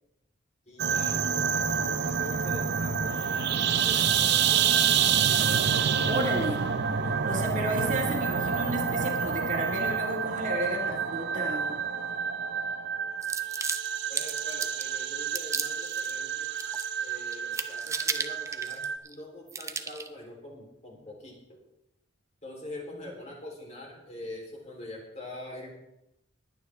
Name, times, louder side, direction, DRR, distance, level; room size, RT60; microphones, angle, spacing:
voice 1, 0.7-5.2 14.1-16.5 17.0-21.6 22.4-25.7, left 1 dB, 35° left, -1 dB, 3.7 m, -44 dB
sound 1, 0.8-19.0, right 7 dB, 60° right, 0.7 m, -28 dB
voice 2, 6.1-6.6 7.0-11.8 23.0-23.1, right 1 dB, 40° right, 0 dB, 2.1 m, -32 dB
sound 2, 13.2-14.9 15.4-16.1 16.4-17.1 17.3-19.2 19.5-20.1, right 4 dB, 15° right, 0.7 m, -34 dB
21.0 x 9.4 x 3.5 m, 0.86 s
head